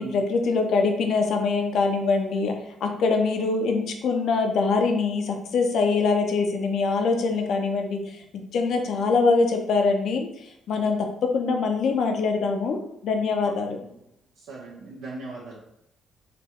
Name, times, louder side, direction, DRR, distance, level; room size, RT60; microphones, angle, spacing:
voice 1, 0.0-2.5 2.8-10.3 10.7-12.8 13.0-13.8, left 4 dB, 70° left, 4 dB, 0.7 m, -23 dB
voice 2, 13.4-13.9 14.3-15.6, right 3 dB, 85° right, -6 dB, 0.9 m, -39 dB
4.1 x 2.3 x 4.5 m, 0.78 s
cardioid pair, 90°, 0 cm